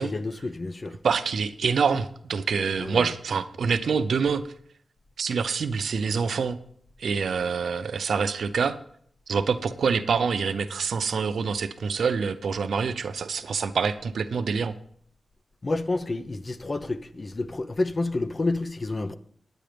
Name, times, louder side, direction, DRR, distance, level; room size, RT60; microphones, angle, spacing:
voice 1, 0.0-1.0 2.8-3.1 15.6-19.1, left 2 dB, 30° left, 0.6 m, -29 dB
voice 2, 1.0-4.4 5.2-6.6 7.0-8.8 9.3-14.7, right 5 dB, 85° right, 0.6 m, -26 dB
9.8 x 9.1 x 5.1 m
wide cardioid pair, 150°, 0 cm